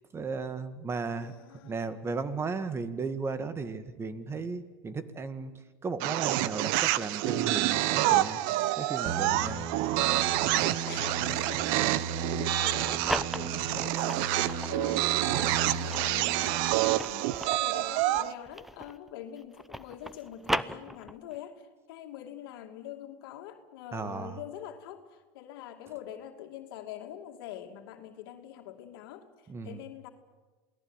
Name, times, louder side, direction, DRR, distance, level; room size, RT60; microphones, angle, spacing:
voice 1, 0.1-5.5 5.8-8.4 8.8-9.7 23.9-24.4 29.5-29.8, right 4 dB, 20° right, 12 dB, 1.9 m, -35 dB
voice 2, 1.2-1.8 10.9-30.1, left 11 dB, 75° left, 4 dB, 2.6 m, -45 dB
sound 1, 6.0-18.3, right 15 dB, 65° right, 1.0 m, -28 dB
sound 2, 9.1-16.7, right 5 dB, 45° right, 1.8 m, -36 dB
sound 3, 12.6-14.8 15.3-19.1 19.4-21.4, equal, ahead, 0.7 m, -36 dB
28.0 x 18.0 x 9.1 m, 1.3 s
supercardioid pair, 125°, 12 cm